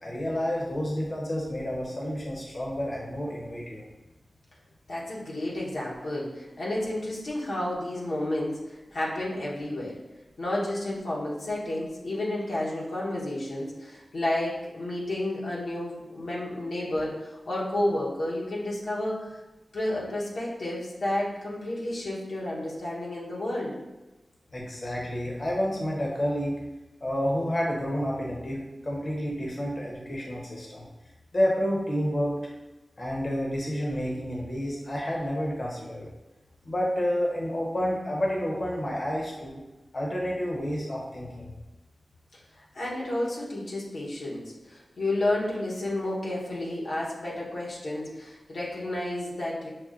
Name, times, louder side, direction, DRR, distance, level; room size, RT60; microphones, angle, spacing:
voice 1, 0.0-3.8 24.5-26.6 27.0-30.9 31.3-32.3 33.0-36.1 36.7-39.6 39.9-41.5, equal, 50° left, -3 dB, 0.8 m, -29 dB
voice 2, 4.9-9.9 10.4-19.3 19.7-23.7 42.6-49.7, left 1 dB, 85° left, -6 dB, 0.9 m, -31 dB
5.7 x 2.1 x 2.4 m, 1.1 s
cardioid pair, 50°, 0 cm